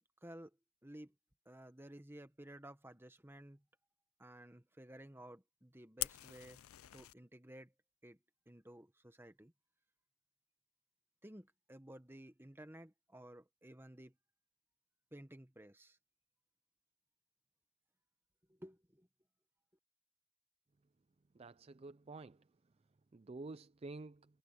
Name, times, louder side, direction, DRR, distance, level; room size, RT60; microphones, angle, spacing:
voice 1, 0.2-0.5 0.8-1.1 1.4-3.6 4.2-6.6 6.9-7.7 8.0-8.2 8.5-9.5 11.2-14.1 15.1-16.0 18.5-19.1, right 1 dB, 10° right, 1.3 m, -55 dB
Fire, 6.0-7.1, left 18 dB, 85° left, 0.4 m, -43 dB
voice 2, 21.3-22.4 23.1-24.3, right 3 dB, 30° right, 0.4 m, -49 dB
head